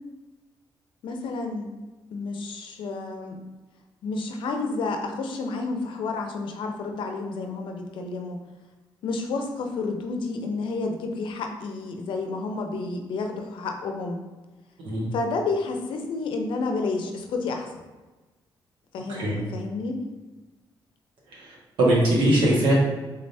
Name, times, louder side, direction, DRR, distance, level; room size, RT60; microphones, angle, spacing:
voice 1, 1.0-1.7 2.1-3.4 4.0-8.4 9.0-14.2 15.1-17.7 18.9-20.0, left 3 dB, 80° left, 4 dB, 0.5 m, -30 dB
voice 2, 21.8-22.7, right 1 dB, 90° right, -5 dB, 1.4 m, -20 dB
3.7 x 2.7 x 3.3 m, 1.2 s
cardioid pair, 135°, 8 cm